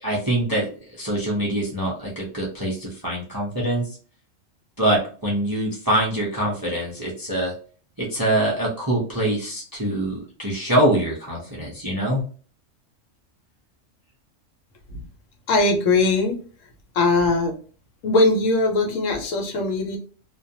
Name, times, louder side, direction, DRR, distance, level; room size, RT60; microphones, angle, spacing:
voice 1, 0.0-4.0 4.8-7.5 8.0-12.2, right 1 dB, 35° right, -3 dB, 0.3 m, -24 dB
voice 2, 15.5-16.4 16.9-17.6 18.0-20.0, left 2 dB, 80° left, 3 dB, 1.1 m, -20 dB
2.4 x 2.2 x 2.6 m, 0.40 s
omnidirectional pair, 1.3 m